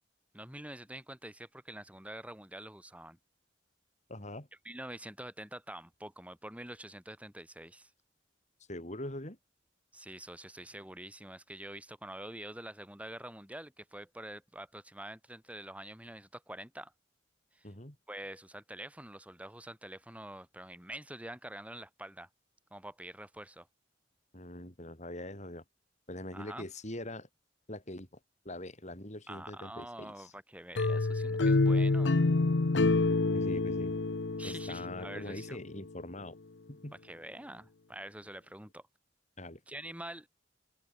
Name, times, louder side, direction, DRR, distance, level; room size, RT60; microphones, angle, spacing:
voice 1, 0.3-3.2 4.6-7.9 9.9-16.9 17.5-17.7 18.1-22.3 22.7-23.7 26.3-26.7 29.3-32.2 34.4-35.6 37.0-38.9 39.7-40.3, right 1 dB, 10° right, 6.7 m, -46 dB
voice 2, 4.1-4.5 8.7-9.4 17.6-18.0 24.3-25.6 26.1-27.3 27.7-28.1 28.4-30.3 33.3-33.9 34.4-36.4 36.7-36.9 39.4-39.6, left 1 dB, 40° left, 5.6 m, -43 dB
sound 1, 30.8-35.7, left 3 dB, 75° left, 0.8 m, -28 dB
head